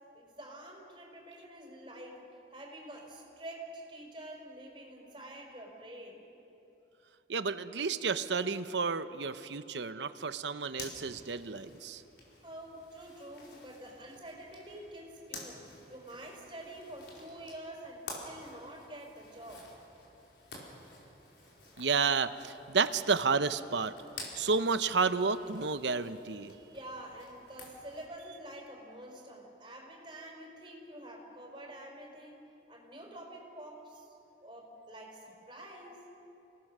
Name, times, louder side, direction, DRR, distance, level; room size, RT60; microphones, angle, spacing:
voice 1, 0.1-6.3 12.4-19.7 21.2-21.3 26.7-34.1 34.4-36.0, right 1 dB, 25° right, -1 dB, 4.8 m, -47 dB
voice 2, 7.3-12.0 21.8-23.9 24.3-26.5, right 4 dB, 80° right, 12 dB, 0.8 m, -31 dB
Zipper (clothing), 10.7-28.0, left 2 dB, 75° left, 5.0 m, -51 dB
29.0 x 18.5 x 6.7 m, 3.0 s
head